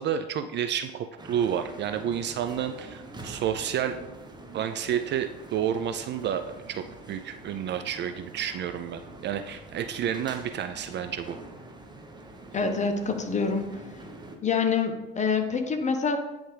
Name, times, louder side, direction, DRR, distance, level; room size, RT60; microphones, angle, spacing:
voice 1, 0.0-4.0 4.5-11.4, right 9 dB, 40° right, 8 dB, 0.4 m, -30 dB
sound 1, 1.2-14.4, right 2 dB, 15° right, 1.0 m, -46 dB
voice 2, 12.5-13.7 14.4-16.2, left 5 dB, 25° left, 6 dB, 0.9 m, -26 dB
9.7 x 3.5 x 3.3 m, 1.0 s
hypercardioid pair, 75°, 29 cm